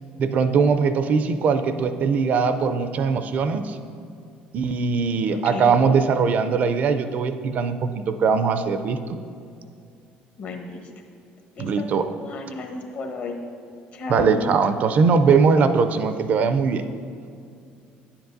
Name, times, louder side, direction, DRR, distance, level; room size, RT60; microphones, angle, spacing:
voice 1, 0.2-3.8 4.5-9.0 11.6-12.1 14.1-16.8, right 5 dB, 50° right, 10 dB, 0.4 m, -21 dB
voice 2, 10.4-10.9 11.5-11.9 12.2-13.3 13.9-14.4, left 4 dB, 50° left, 3 dB, 1.0 m, -33 dB
9.9 x 7.1 x 2.6 m, 2.4 s
cardioid pair, 120°, 3 cm